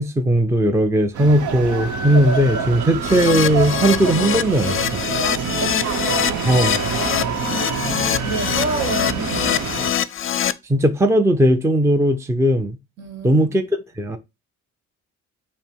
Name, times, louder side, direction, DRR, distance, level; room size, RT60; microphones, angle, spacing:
voice 1, 0.0-4.8 6.4-6.8 10.7-12.8 13.2-14.2, right 1 dB, 10° right, 0.5 m, -18 dB
sound 1, 1.1-9.9, right 5 dB, 75° right, 0.9 m, -26 dB
Keyboard (musical), 3.0-10.5, left 10 dB, 45° left, 0.5 m, -24 dB
voice 2, 5.2-5.8 8.1-9.7 13.0-13.5, right 4 dB, 60° right, 1.4 m, -28 dB
5.5 x 2.1 x 4.5 m
cardioid pair, 90°, 30 cm